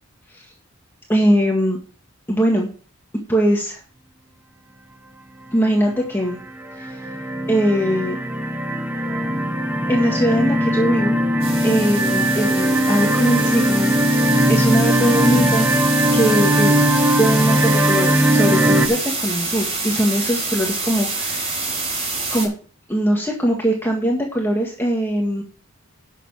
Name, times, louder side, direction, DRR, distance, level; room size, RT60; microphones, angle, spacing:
voice 1, 1.1-1.8 2.3-2.7 3.3-3.8 5.5-6.4 6.8-7.0 7.5-8.2 9.9-11.2 11.6-15.7 16.1-16.8 17.1-21.6 22.3-22.5 22.9-25.4, equal, 10° left, -1 dB, 1.8 m, -21 dB
sound 1, 5.7-6.1 6.6-18.9, right 1 dB, 10° right, 1.0 m, -19 dB
sound 2, 11.4-22.5, right 3 dB, 30° right, 4.7 m, -27 dB
11.5 x 7.0 x 4.9 m, 0.40 s
head